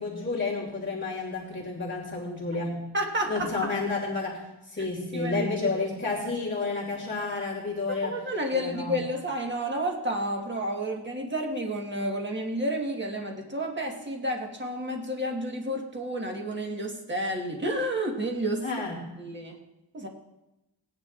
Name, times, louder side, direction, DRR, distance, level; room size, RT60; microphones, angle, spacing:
voice 1, 0.0-2.8 3.3-8.2 8.5-9.0 18.6-19.1, left 3 dB, 25° left, -4 dB, 2.6 m, -31 dB
voice 2, 2.9-3.7 4.8-4.9 5.1-5.5 8.0-18.7 19.2-19.6 19.9-20.1, right 1 dB, 25° right, 1 dB, 1.5 m, -30 dB
18.0 x 9.9 x 2.5 m, 0.93 s
wide cardioid pair, 140°, 42 cm